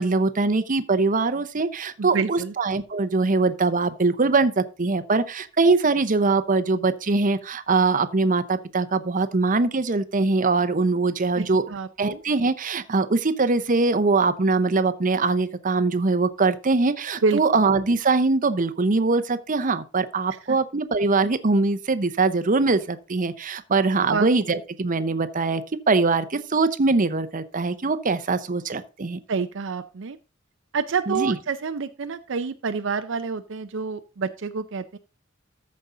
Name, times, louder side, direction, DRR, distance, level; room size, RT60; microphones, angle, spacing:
voice 1, 0.0-11.6 12.0-25.6 25.9-29.2 31.1-31.3, right 3 dB, 40° right, 0.8 m, -22 dB
voice 2, 2.0-2.5 11.4-12.3 17.2-17.6 20.3-20.6 24.1-24.3 29.3-30.2 30.7-35.0, right 5 dB, 70° right, 0.5 m, -28 dB
14.0 x 5.3 x 3.8 m
head